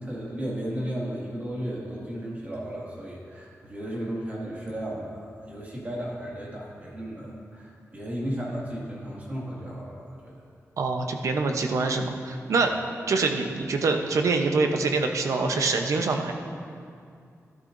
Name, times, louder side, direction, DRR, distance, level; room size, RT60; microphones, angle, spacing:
voice 1, 0.0-10.3 12.6-12.7, equal, 30° right, -5 dB, 2.1 m, -34 dB
voice 2, 10.8-12.7 13.1-16.3, right 3 dB, 75° right, 4 dB, 0.8 m, -25 dB
13.0 x 12.0 x 2.6 m, 2.4 s
wide cardioid pair, 160°, 5 cm